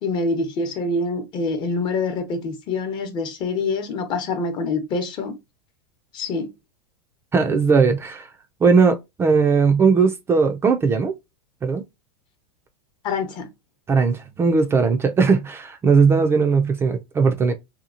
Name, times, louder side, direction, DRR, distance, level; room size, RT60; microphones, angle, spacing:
voice 1, 0.0-5.4 6.1-6.5 13.0-13.5, left 3 dB, 40° left, 0.9 m, -25 dB
voice 2, 7.3-8.3 8.6-11.1 11.6-11.8 13.9-17.5, right 5 dB, 20° right, 0.4 m, -18 dB
2.9 x 2.3 x 2.5 m
hypercardioid pair, 115°, 13 cm